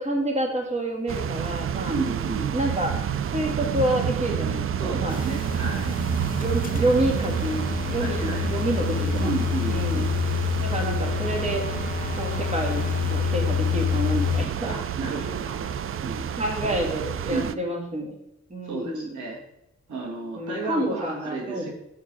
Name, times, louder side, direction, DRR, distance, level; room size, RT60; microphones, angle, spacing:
voice 1, 0.0-2.0 2.5-3.0 3.3-5.2 6.4-9.3 9.7-10.1 10.6-11.6 12.2-14.8 16.4-18.2 18.5-19.2 20.4-21.7, right 1 dB, 25° right, 1 dB, 1.8 m, -28 dB
sound 1, 1.1-17.5, right 8 dB, 50° right, 0.4 m, -29 dB
voice 2, 1.9-2.5 4.7-6.0 8.0-8.5 9.2-10.1 14.6-16.3 16.6-16.7 17.3-17.6 18.6-19.4 19.9-21.7, right 3 dB, 90° right, -1 dB, 2.0 m, -32 dB
sound 2, 5.1-14.5, left 7 dB, 30° left, 0.4 m, -28 dB
7.0 x 4.7 x 6.0 m, 0.86 s
cardioid pair, 90°, 29 cm